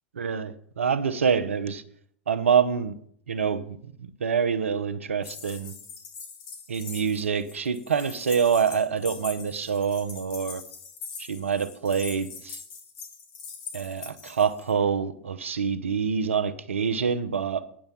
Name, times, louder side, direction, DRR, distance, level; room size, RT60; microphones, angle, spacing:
voice 1, 0.1-1.8 2.3-3.0 3.3-5.7 6.7-10.6 11.2-12.6 13.7-17.6, right 6 dB, 90° right, 0.8 m, -26 dB
sound 1, 5.2-14.7, left 5 dB, 60° left, 3.1 m, -42 dB
9.3 x 7.5 x 7.2 m
hypercardioid pair, 95°, 7 cm